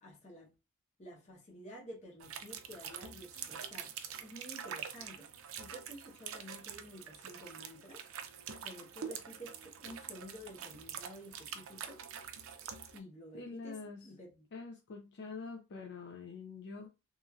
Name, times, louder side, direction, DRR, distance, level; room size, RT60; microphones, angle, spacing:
voice 1, 0.0-0.5 1.0-3.9 4.2-5.3 5.6-8.1 8.6-12.0 12.9-13.8 14.0-14.4, equal, 30° left, 0.9 m, -51 dB
sound 1, 2.2-13.0, right 8 dB, 65° right, 0.4 m, -46 dB
voice 2, 13.3-14.1 14.5-16.9, left 4 dB, 50° left, 0.4 m, -45 dB
3.0 x 2.5 x 2.3 m
head